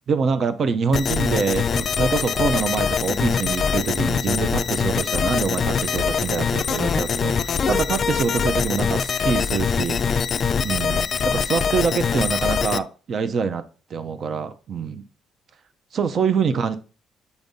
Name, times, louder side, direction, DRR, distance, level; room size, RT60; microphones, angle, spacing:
voice 1, 0.1-10.0 10.6-13.6 13.9-15.0 15.9-16.8, right 5 dB, 45° right, 0.5 m, -25 dB
sound 1, 0.9-12.8, left 6 dB, 40° left, 0.3 m, -23 dB
8.1 x 5.2 x 2.6 m
cardioid pair, 125°, 0 cm